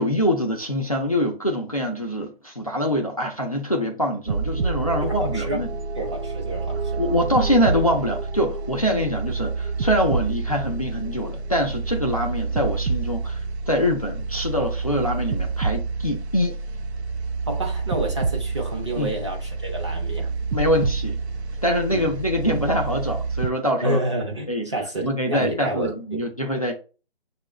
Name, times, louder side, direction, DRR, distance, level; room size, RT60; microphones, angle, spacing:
voice 1, 0.0-5.7 7.0-13.4 13.7-16.6 19.0-19.1 20.5-21.2 21.6-24.0 24.5-24.7 25.0-26.7, equal, 35° left, 0.4 m, -24 dB
sound 1, 4.3-23.5, right 4 dB, 75° right, 0.6 m, -28 dB
voice 2, 5.0-5.6 5.9-7.0 17.5-20.3 21.9-22.1 23.8-26.3, right 1 dB, 25° right, 0.7 m, -29 dB
6.8 x 2.3 x 3.0 m
hypercardioid pair, 170°, 33 cm